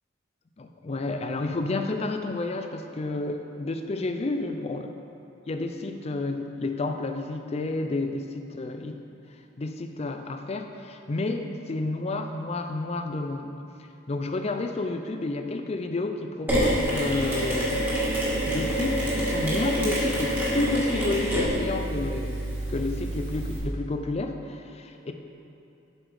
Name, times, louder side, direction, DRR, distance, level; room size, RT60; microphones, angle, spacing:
voice 1, 0.6-4.9 5.5-9.0 9.6-13.6 14.1-17.9 18.4-25.1, left 2 dB, 35° left, 6 dB, 0.4 m, -30 dB
Mechanisms, 16.5-23.6, right 1 dB, 10° right, 1.7 m, -27 dB
7.3 x 5.0 x 4.9 m, 2.8 s
head